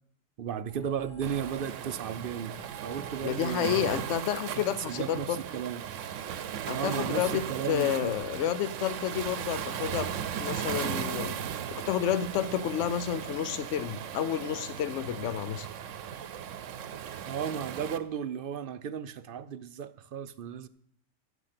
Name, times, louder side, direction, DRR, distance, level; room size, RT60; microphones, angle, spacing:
voice 1, 0.4-3.9 4.6-5.8 6.7-8.1 17.3-20.7, right 8 dB, 55° right, 14 dB, 0.6 m, -35 dB
sound 1, 0.7-6.1, right 5 dB, 10° right, 1.8 m, -53 dB
Waves surf, 1.2-18.0, right 9 dB, 75° right, 1.0 m, -37 dB
voice 2, 3.2-5.4 6.7-10.1 10.4-11.3 11.9-15.7, left 10 dB, 70° left, 15 dB, 1.0 m, -30 dB
15.5 x 7.1 x 5.8 m, 0.69 s
omnidirectional pair, 1.4 m